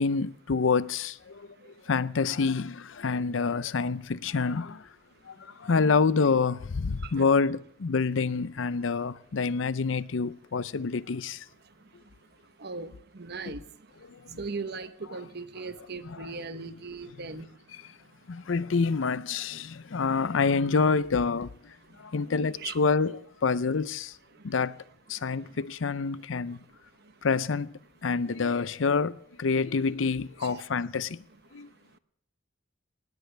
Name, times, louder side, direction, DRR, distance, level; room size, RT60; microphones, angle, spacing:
voice 1, 0.0-4.9 5.3-11.5 13.5-13.6 14.1-14.4 16.2-16.7 18.3-24.2 24.4-24.8 25.1-26.6 27.2-27.7 28.0-31.2 31.5-31.7, left 4 dB, 75° left, 0.6 m, -27 dB
voice 2, 12.6-13.6 14.4-17.5 22.6-22.8 30.4-30.7, right 4 dB, 55° right, 1.0 m, -38 dB
18.5 x 17.5 x 3.4 m
head